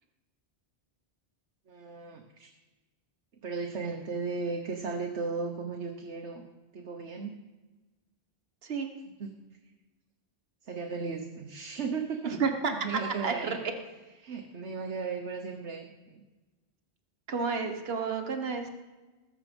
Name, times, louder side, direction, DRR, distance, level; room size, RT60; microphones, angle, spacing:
voice 1, 1.7-2.5 3.4-6.4 6.7-7.4 9.2-9.4 10.6-12.3 12.8-13.5 14.2-16.2, right 4 dB, 90° right, 3 dB, 1.4 m, -36 dB
voice 2, 13.2-13.6 17.3-18.7, right 5 dB, 65° right, 5 dB, 1.5 m, -31 dB
19.5 x 7.3 x 5.3 m, 1.2 s
omnidirectional pair, 1.1 m